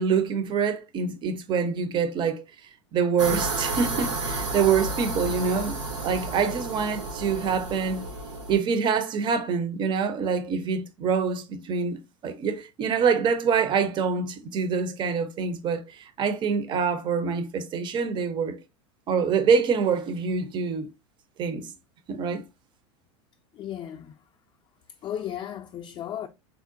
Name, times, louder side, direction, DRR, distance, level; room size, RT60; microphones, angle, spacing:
voice 1, 0.0-2.4 2.9-8.0 8.5-18.6 19.1-20.9 21.4-21.7 22.1-22.4, right 6 dB, 30° right, 0.5 m, -25 dB
sound 1, 3.2-8.6, right 2 dB, 85° right, 0.9 m, -31 dB
voice 2, 23.5-24.1 25.0-26.3, left 10 dB, 30° left, 0.4 m, -35 dB
3.6 x 2.1 x 2.5 m
hypercardioid pair, 105°, 15 cm